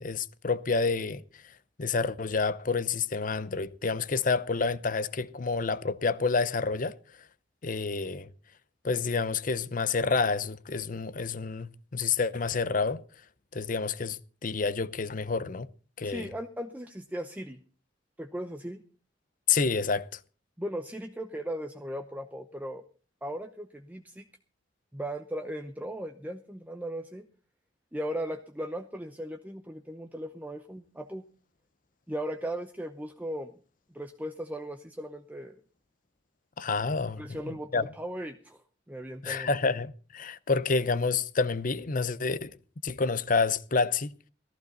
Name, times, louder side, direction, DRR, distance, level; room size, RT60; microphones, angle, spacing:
voice 1, 0.0-1.5 1.8-7.0 7.6-8.3 8.8-13.0 13.5-15.7 16.0-16.3 19.5-20.2 36.6-37.9 39.2-42.6 42.8-44.1, left 4 dB, 45° left, 0.7 m, -29 dB
voice 2, 16.0-17.6 18.2-18.8 20.6-22.8 23.2-24.2 24.9-27.3 27.9-31.2 32.1-33.5 33.9-35.6 37.2-38.6 38.9-39.5, equal, 10° right, 0.7 m, -37 dB
14.5 x 14.5 x 4.0 m
head